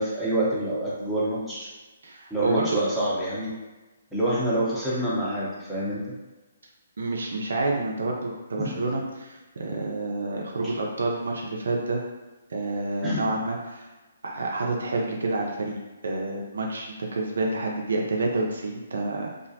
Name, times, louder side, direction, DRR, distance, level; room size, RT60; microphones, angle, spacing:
voice 1, 0.0-1.7 2.3-3.5 4.1-6.0 8.6-8.8 13.0-13.4, right 1 dB, ahead, -10 dB, 0.7 m, -27 dB
voice 2, 2.0-2.8 7.0-12.0 12.5-13.8 14.2-15.8 16.0-19.5, right 2 dB, 70° right, 0 dB, 0.4 m, -28 dB
2.4 x 2.0 x 2.7 m, 1.2 s
figure-of-eight pair, 135°, 0 cm